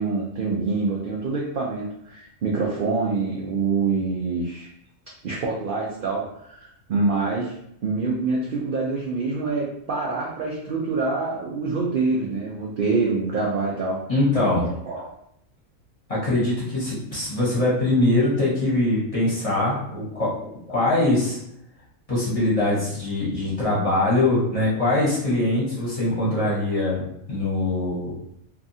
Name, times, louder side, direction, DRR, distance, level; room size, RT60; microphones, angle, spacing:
voice 1, 0.0-4.7 5.2-7.5 7.8-14.0 14.6-15.1, right 3 dB, 65° right, -3 dB, 0.5 m, -26 dB
voice 2, 14.1-14.7 16.1-20.3 20.7-21.4 22.1-27.0 27.3-28.1, left 2 dB, 30° left, -8 dB, 0.9 m, -22 dB
2.7 x 2.4 x 2.6 m, 0.75 s
omnidirectional pair, 1.4 m